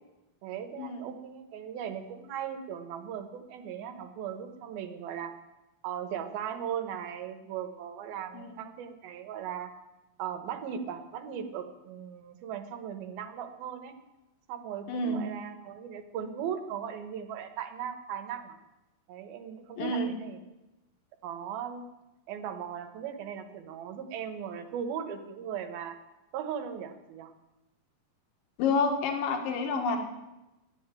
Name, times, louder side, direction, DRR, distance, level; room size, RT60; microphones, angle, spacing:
voice 1, 0.4-5.3 5.8-9.7 10.2-13.9 14.5-18.6 19.1-20.4 21.2-21.8 22.3-26.0 26.3-27.3, right 8 dB, 75° right, 7 dB, 2.8 m, -38 dB
voice 2, 14.9-15.2 19.8-20.1 28.6-30.0, left 3 dB, 65° left, 3 dB, 3.0 m, -29 dB
11.0 x 8.7 x 8.7 m, 1.0 s
omnidirectional pair, 4.5 m